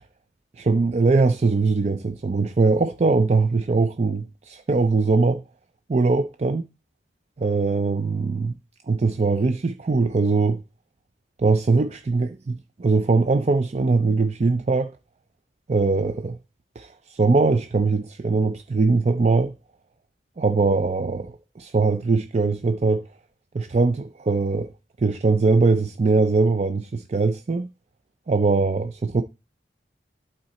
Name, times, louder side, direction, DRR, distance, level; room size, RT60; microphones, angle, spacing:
voice 1, 0.6-5.4 5.9-6.6 7.4-8.6 8.9-10.6 11.4-14.9 15.7-16.4 16.8-19.5 20.4-23.0 23.5-24.7 25.0-27.7 28.3-29.2, right 3 dB, 40° right, 0.4 m, -21 dB
11.5 x 4.0 x 4.2 m
head